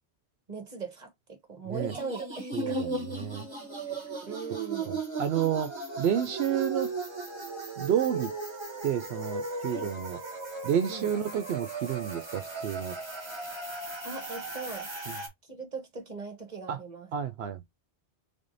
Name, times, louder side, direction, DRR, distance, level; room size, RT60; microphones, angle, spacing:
voice 1, 0.5-2.8 3.9-5.0 9.7-9.9 10.9-11.1 14.0-14.9 15.4-17.1, right 4 dB, 40° right, 1.1 m, -40 dB
sound 1, 1.7-15.3, right 3 dB, 25° right, 1.3 m, -36 dB
voice 2, 2.5-3.5 4.9-5.7 6.0-6.9 7.8-8.3 8.8-10.2 10.6-13.0 15.1-15.2 16.7-16.8 17.1-17.6, right 9 dB, 70° right, 0.8 m, -30 dB
3.7 x 3.5 x 2.5 m
omnidirectional pair, 1.2 m